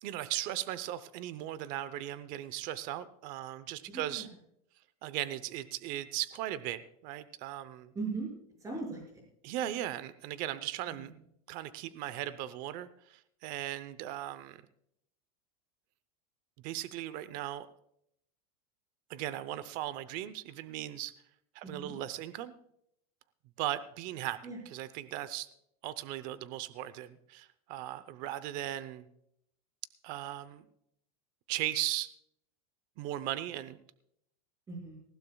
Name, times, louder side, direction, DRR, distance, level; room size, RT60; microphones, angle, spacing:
voice 1, 0.0-4.3 5.0-7.9 9.4-11.1 11.5-14.6 16.6-17.7 19.1-21.1 21.5-22.6 23.6-24.4 24.7-25.5 25.8-29.1 30.0-30.7 31.5-32.1 33.0-33.8, right 13 dB, 45° right, 15 dB, 0.8 m, -37 dB
voice 2, 3.9-4.3 7.9-8.3 8.6-9.2 21.6-21.9 24.4-24.6 34.7-35.0, right 3 dB, 20° right, -1 dB, 5.9 m, -39 dB
19.5 x 15.5 x 2.3 m, 0.73 s
supercardioid pair, 145°, 19 cm